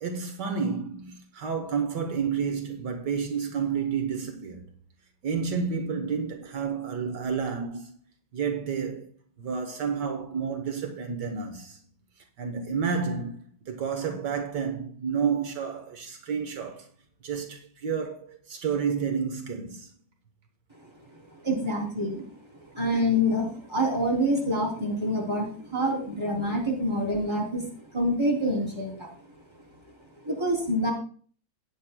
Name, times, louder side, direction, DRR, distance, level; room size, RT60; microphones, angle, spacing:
voice 1, 0.0-4.6 5.2-8.0 8.3-9.1 9.4-11.8 12.4-16.9 17.2-19.9, right 6 dB, 75° right, 1.7 m, -30 dB
voice 2, 21.4-22.3 22.7-27.7 27.9-29.1 30.2-30.9, equal, 15° right, 3.1 m, -26 dB
16.0 x 9.4 x 2.2 m
omnidirectional pair, 1.8 m